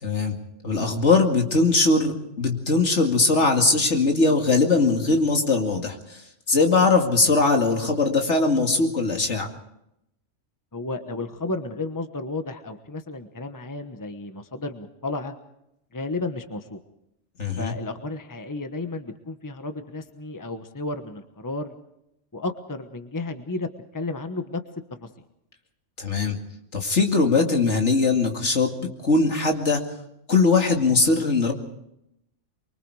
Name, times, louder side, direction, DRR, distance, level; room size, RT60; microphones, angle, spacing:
voice 1, 0.0-0.3 0.6-6.2 6.5-9.5 17.4-17.7 26.0-26.4 26.7-29.8 30.3-31.5, left 3 dB, 65° left, 3 dB, 2.6 m, -21 dB
voice 2, 10.7-15.3 15.9-16.8 17.6-21.7 22.3-24.6 25.0-25.1, left 2 dB, 15° left, 7 dB, 1.2 m, -32 dB
24.5 x 23.5 x 4.9 m, 0.81 s
omnidirectional pair, 1.3 m